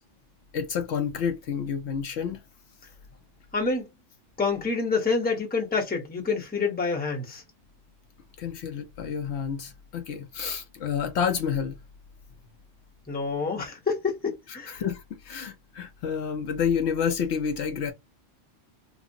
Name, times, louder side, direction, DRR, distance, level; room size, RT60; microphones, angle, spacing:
voice 1, 0.5-2.4 8.4-11.8 14.5-17.9, left 7 dB, 70° left, 0.8 m, -29 dB
voice 2, 3.5-3.9 4.4-7.4 13.1-14.8, left 4 dB, 10° left, 0.7 m, -27 dB
3.1 x 2.0 x 2.5 m
omnidirectional pair, 1.3 m